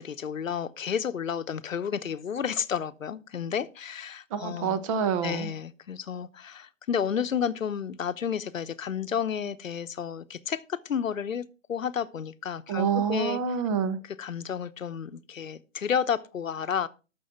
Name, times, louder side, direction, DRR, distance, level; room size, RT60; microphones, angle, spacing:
voice 1, 0.0-4.8 5.2-13.4 14.2-16.9, left 7 dB, 90° left, 0.9 m, -31 dB
voice 2, 4.3-5.5 12.7-14.0, right 7 dB, 25° right, 0.9 m, -27 dB
13.5 x 6.3 x 4.4 m
hypercardioid pair, 145°, 38 cm